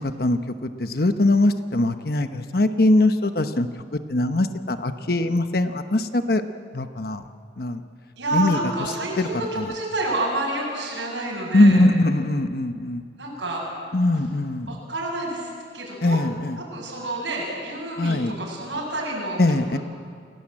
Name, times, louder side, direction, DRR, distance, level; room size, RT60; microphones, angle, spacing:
voice 1, 0.0-3.7 4.1-6.4 6.7-7.2 7.6-7.8 8.3-9.7 11.5-13.0 13.9-14.7 16.0-16.6 18.0-18.3 19.4-19.8, left 2 dB, 55° left, 8 dB, 1.0 m, -21 dB
voice 2, 8.2-11.9 13.2-13.7 14.7-15.5 15.7-16.2 16.7-19.6, right 2 dB, 85° right, -4 dB, 7.5 m, -29 dB
28.5 x 17.0 x 8.9 m, 2.1 s
head